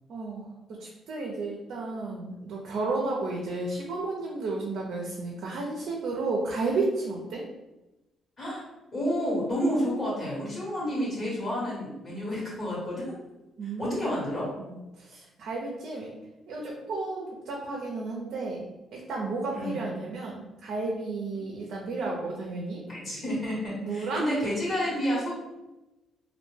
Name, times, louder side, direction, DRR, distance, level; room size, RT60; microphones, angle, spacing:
voice 1, 0.1-0.5 0.8-7.4 13.6-14.0 14.6-14.7 15.0-16.1 16.5-18.6 18.9-22.8 23.8-24.2, right 3 dB, 70° right, -2 dB, 0.5 m, -32 dB
voice 2, 8.9-13.1 13.6-14.5 19.5-20.0 22.9-25.3, equal, 40° left, -6 dB, 1.4 m, -30 dB
2.5 x 2.1 x 3.2 m, 1.0 s
cardioid pair, 90°, 0 cm